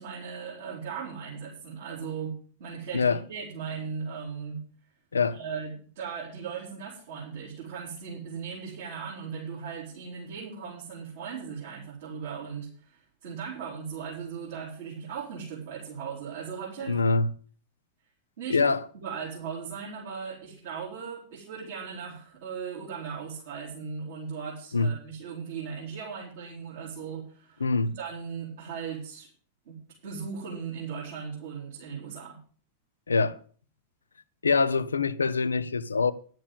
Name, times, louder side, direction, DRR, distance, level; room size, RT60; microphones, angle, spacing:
voice 1, 0.0-4.6 5.3-17.0 18.4-18.7 19.0-27.7 28.0-29.3 29.7-32.4, right 6 dB, 60° right, 4.4 m, -38 dB
voice 2, 16.9-17.3 18.5-18.8 24.7-24.9 27.6-28.0 33.1-33.4 34.4-36.1, left 4 dB, 75° left, 0.6 m, -24 dB
11.0 x 7.7 x 7.0 m
figure-of-eight pair, 90°, 0 cm